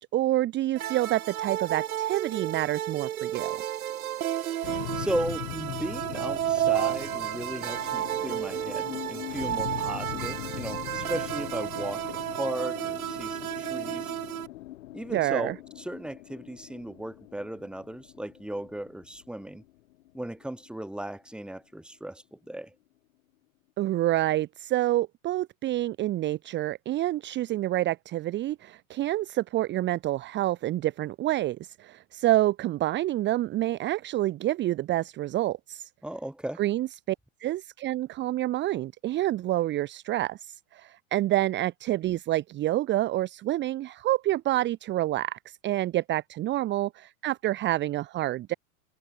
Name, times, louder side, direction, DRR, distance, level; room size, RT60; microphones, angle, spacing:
voice 1, 0.0-3.6 15.1-15.5 23.8-35.9 36.6-37.1 37.4-48.5, right 15 dB, 25° right, 1.2 m, -28 dB
sound 1, 0.8-14.5, right 12 dB, 80° right, 1.9 m, -32 dB
sound 2, 4.6-21.0, left 16 dB, 65° left, 4.1 m, -41 dB
voice 2, 4.9-14.1 14.9-19.6 20.1-22.7 36.0-36.6, right 1 dB, ahead, 3.2 m, -36 dB
hypercardioid pair, 130°, 42 cm